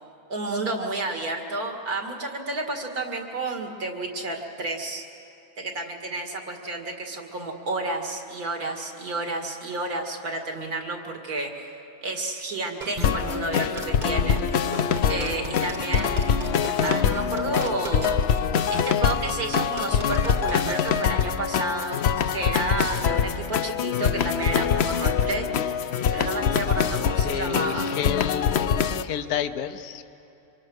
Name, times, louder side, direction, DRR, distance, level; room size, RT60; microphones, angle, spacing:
voice 1, 0.3-5.0 5.6-14.4 15.1-18.2 18.7-22.0 22.3-25.5 26.1-27.9, right 2 dB, 75° right, 3 dB, 2.7 m, -31 dB
sound 1, 12.8-21.4, right 3 dB, 35° right, 1.2 m, -37 dB
sound 2, 13.0-29.0, left 7 dB, 55° left, 0.8 m, -24 dB
voice 2, 27.2-30.0, left 9 dB, 75° left, 10 dB, 1.3 m, -30 dB
25.0 x 25.0 x 6.5 m, 2.8 s
omnidirectional pair, 1.6 m